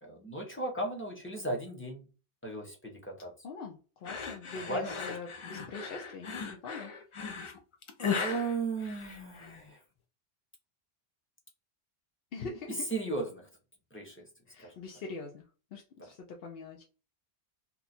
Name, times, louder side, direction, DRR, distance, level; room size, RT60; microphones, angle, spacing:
voice 1, 0.0-2.1 2.4-3.3 4.6-5.2 8.1-9.8 12.4-13.5 13.9-14.2 14.6-14.8 16.0-16.1, right 2 dB, 15° left, -1 dB, 0.7 m, -36 dB
voice 2, 3.4-6.9 12.3-12.9 14.5-15.5 15.7-16.8, left 4 dB, 65° left, 0 dB, 0.8 m, -43 dB
sound 1, 4.1-9.6, left 6 dB, 45° left, 0.4 m, -37 dB
2.8 x 2.3 x 4.1 m, 0.34 s
omnidirectional pair, 1.1 m